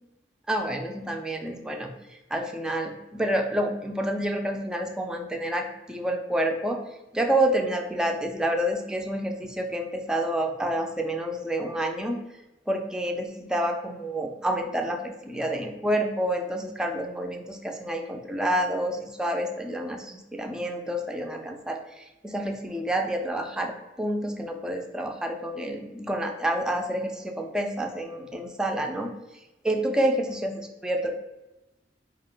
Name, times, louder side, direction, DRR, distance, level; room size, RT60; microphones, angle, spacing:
voice 1, 0.5-6.8 7.1-12.2 12.7-29.1 29.6-31.1, right 1 dB, 5° right, 3 dB, 0.3 m, -28 dB
4.1 x 2.1 x 3.7 m, 0.99 s
head